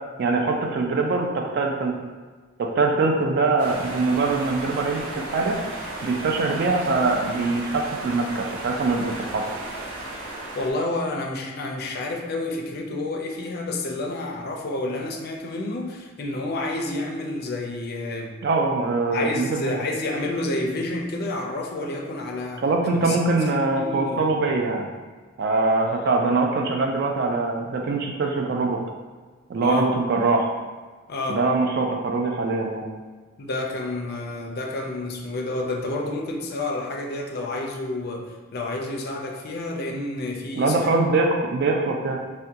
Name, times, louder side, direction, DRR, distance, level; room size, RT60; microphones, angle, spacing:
voice 1, 0.2-1.9 2.6-5.6 6.0-9.4 18.4-19.8 22.6-24.9 25.4-28.8 29.5-30.5 31.3-32.8 40.6-42.2, right 3 dB, 50° right, 1 dB, 0.3 m, -23 dB
sound 1, 3.6-10.7, right 2 dB, 85° right, 0.6 m, -35 dB
voice 2, 10.5-18.3 19.1-22.6 22.9-24.3 29.6-29.9 31.1-31.4 33.4-40.9, left 2 dB, 50° left, 1 dB, 0.4 m, -29 dB
3.5 x 2.2 x 2.7 m, 1.4 s
head